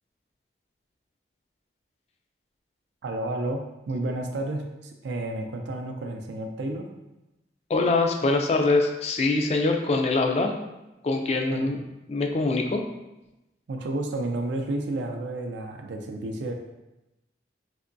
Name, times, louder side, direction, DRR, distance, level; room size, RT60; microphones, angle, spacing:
voice 1, 3.0-6.9 11.5-11.8 13.7-16.5, right 2 dB, 80° right, 4 dB, 0.4 m, -31 dB
voice 2, 7.7-10.5 11.0-11.8 12.1-12.8, left 3 dB, 35° left, 3 dB, 0.3 m, -23 dB
3.4 x 2.8 x 2.6 m, 0.97 s
head